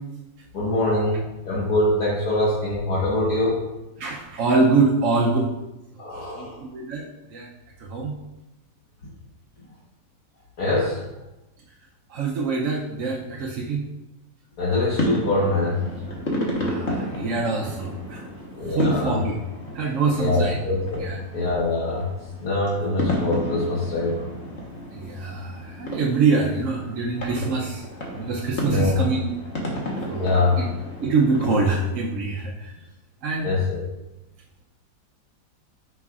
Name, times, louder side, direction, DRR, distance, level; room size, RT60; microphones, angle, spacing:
voice 1, 0.5-3.6 6.0-6.5 10.6-11.1 14.6-15.8 18.6-19.2 20.2-21.1 21.3-22.1 22.4-24.3 28.6-29.0 30.2-30.6 33.4-33.8, left 2 dB, 60° left, -8 dB, 1.8 m, -23 dB
voice 2, 4.0-5.5 6.3-7.0 7.3-7.5 7.9-8.1 12.1-13.9 16.6-18.2 18.7-19.4 19.7-20.6 21.0-21.2 24.9-27.8 28.1-29.3 30.1-30.7 31.0-32.7 33.2-33.5, right 4 dB, 60° right, -3 dB, 0.9 m, -24 dB
sound 1, 14.9-31.9, left 1 dB, 40° left, 1.4 m, -32 dB
9.5 x 5.8 x 2.4 m, 1.0 s
omnidirectional pair, 2.0 m